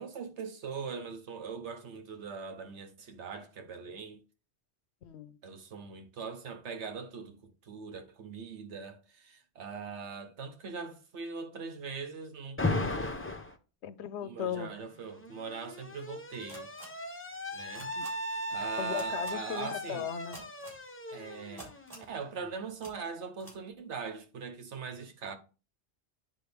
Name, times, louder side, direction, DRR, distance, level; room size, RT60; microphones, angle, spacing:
voice 1, 0.0-4.2 5.4-7.4 7.6-13.1 14.2-16.7 17.5-17.9 18.3-20.1 21.1-21.7 22.1-25.4, right 5 dB, 85° right, 1.3 m, -41 dB
voice 2, 5.0-5.4 13.8-14.7 18.0-18.1 18.8-20.4, left 9 dB, 75° left, 0.8 m, -37 dB
Alarm, 12.6-13.5 14.8-22.5, left 1 dB, 15° left, 0.5 m, -37 dB
sound 1, 16.5-16.9 17.7-18.1 18.9-19.3 20.3-20.8 21.6-22.1 22.8-22.9 23.4-23.5, right 2 dB, 20° right, 3.6 m, -47 dB
9.8 x 3.7 x 3.4 m
omnidirectional pair, 1.1 m